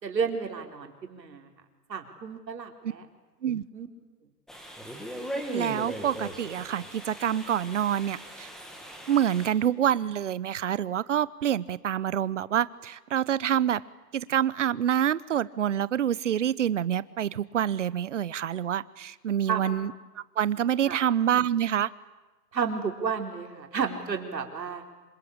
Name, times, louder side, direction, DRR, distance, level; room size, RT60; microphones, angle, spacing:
voice 1, 0.0-1.5 1.9-3.1 3.7-3.9 19.5-19.8 20.8-21.0 22.5-24.8, right 6 dB, 85° right, 4 dB, 4.6 m, -32 dB
sound 1, 4.5-9.5, equal, ahead, 1.4 m, -39 dB
voice 2, 5.5-8.5 9.1-13.8 14.1-19.9 20.4-21.9, right 10 dB, 45° right, 19 dB, 0.9 m, -27 dB
27.0 x 25.0 x 8.7 m, 1.2 s
hypercardioid pair, 165°, 49 cm